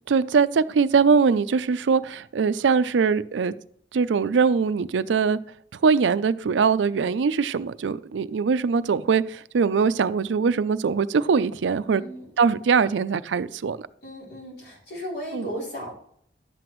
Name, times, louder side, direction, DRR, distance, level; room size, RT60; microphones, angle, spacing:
voice 1, 0.1-3.5 3.9-5.4 5.8-12.0 12.4-13.8 15.3-15.5, right 5 dB, 90° right, 0.4 m, -22 dB
voice 2, 11.9-12.3 14.0-15.9, equal, 60° left, 3.8 m, -35 dB
11.5 x 7.7 x 3.1 m
head